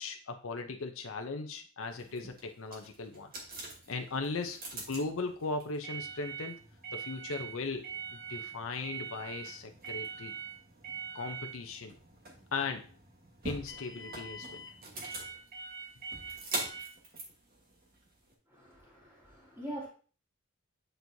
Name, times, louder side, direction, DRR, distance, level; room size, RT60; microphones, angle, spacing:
voice 1, 0.0-3.3 3.9-6.6 6.9-10.3 11.1-11.9 12.5-12.9 13.4-14.6, left 3 dB, 65° left, 5 dB, 0.7 m, -38 dB
sound 1, 1.9-18.3, right 4 dB, 45° right, 1.4 m, -43 dB
voice 2, 18.5-19.9, right 1 dB, 10° right, -10 dB, 2.3 m, -43 dB
7.9 x 4.5 x 2.7 m, 0.40 s
head